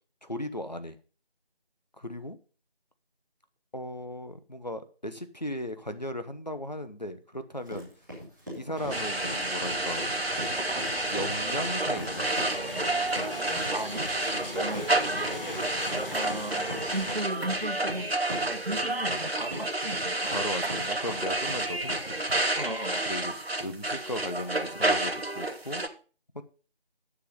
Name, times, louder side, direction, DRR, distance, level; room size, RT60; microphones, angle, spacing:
voice 1, 0.2-1.0 2.0-2.4 3.7-7.9 8.5-10.1 11.1-12.3 15.7-16.1 20.3-22.2 23.1-25.8 26.3-26.4, left 1 dB, 45° left, 1.0 m, -37 dB
sound 1, 7.6-22.5, equal, ahead, 1.8 m, -40 dB
sound 2, 8.7-17.2, left 1 dB, 65° left, 3.3 m, -39 dB
sound 3, 8.9-25.9, right 2 dB, 80° right, 1.6 m, -30 dB
voice 2, 13.7-14.1 14.5-15.2 15.7-20.4 22.5-23.1, right 1 dB, 55° right, 1.1 m, -36 dB
10.0 x 7.3 x 5.3 m
figure-of-eight pair, 175°, 30 cm